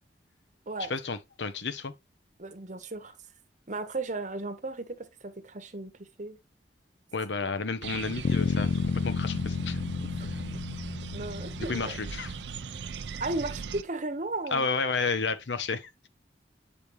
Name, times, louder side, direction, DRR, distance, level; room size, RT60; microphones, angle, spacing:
voice 1, 0.9-1.9 7.1-9.8 11.7-12.4 14.5-16.1, left 4 dB, 80° left, 0.8 m, -31 dB
voice 2, 2.4-3.1 3.7-6.4 10.2-10.3 11.1-12.0 13.2-14.7, right 2 dB, 45° right, 1.1 m, -35 dB
sound 1, 7.8-13.8, right 5 dB, 75° right, 0.5 m, -39 dB
sound 2, 8.2-12.3, left 5 dB, 55° left, 0.3 m, -31 dB
6.9 x 5.1 x 3.1 m
head